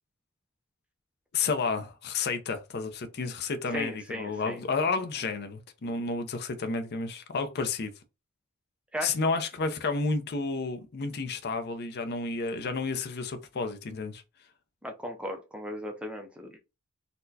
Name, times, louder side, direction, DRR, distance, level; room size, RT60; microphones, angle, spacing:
voice 1, 1.3-7.9 9.0-14.2, left 4 dB, 50° left, 0.5 m, -31 dB
voice 2, 3.7-4.6 8.9-9.2 14.8-16.6, equal, 5° right, 0.4 m, -36 dB
4.1 x 2.1 x 2.7 m
head